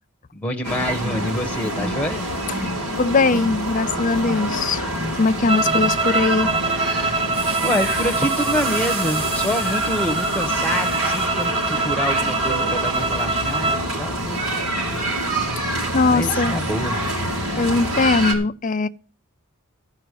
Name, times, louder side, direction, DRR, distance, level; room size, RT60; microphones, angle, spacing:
voice 1, 0.3-2.3 7.6-14.4 16.1-17.0, left 1 dB, 5° left, 1.2 m, -26 dB
sound 1, 0.6-18.3, right 1 dB, 85° right, 5.1 m, -26 dB
voice 2, 3.0-4.9 5.2-6.5 15.7-16.6 17.6-18.9, left 3 dB, 35° left, 0.5 m, -20 dB
sound 2, 5.5-13.9, right 3 dB, 25° right, 0.6 m, -24 dB
sound 3, 7.3-11.3, right 2 dB, 40° right, 2.8 m, -34 dB
14.5 x 5.7 x 8.3 m
head